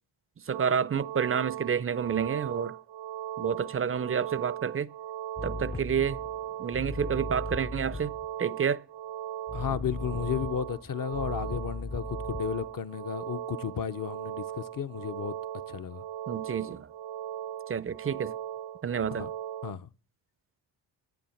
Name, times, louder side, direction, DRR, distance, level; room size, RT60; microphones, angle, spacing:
voice 1, 0.5-2.8 3.4-4.9 5.4-6.2 6.6-8.1 8.4-8.8 16.3-16.9 17.7-18.3 18.8-19.3, right 7 dB, 30° right, 0.5 m, -29 dB
sound 1, 0.5-19.7, right 11 dB, 80° right, 0.7 m, -39 dB
sound 2, 5.4-8.3 9.5-12.7, left 2 dB, 15° left, 0.5 m, -38 dB
voice 2, 9.5-15.3 15.7-16.0 19.2-19.3 19.6-19.9, left 8 dB, 45° left, 0.8 m, -33 dB
10.5 x 9.2 x 7.1 m
cardioid pair, 65°, 46 cm